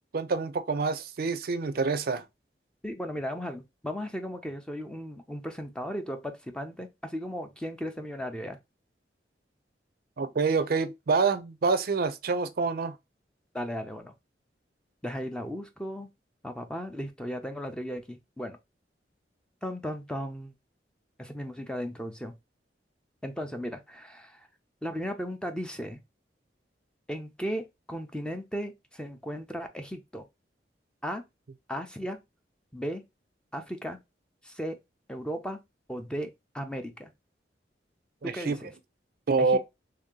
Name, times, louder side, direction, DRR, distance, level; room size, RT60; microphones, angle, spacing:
voice 1, 0.1-2.2 10.2-13.0 38.2-38.6 39.3-39.6, right 4 dB, 55° right, 0.4 m, -27 dB
voice 2, 2.8-8.6 13.5-14.1 15.0-16.1 16.4-18.6 19.6-20.5 21.2-22.3 23.2-24.5 24.8-26.0 27.1-30.2 31.0-31.2 31.7-32.2 32.7-33.0 33.5-34.0 34.4-34.8 35.1-35.6 35.9-37.1 38.2-38.7 39.4-39.6, equal, 5° left, 0.5 m, -36 dB
3.3 x 2.8 x 3.6 m
head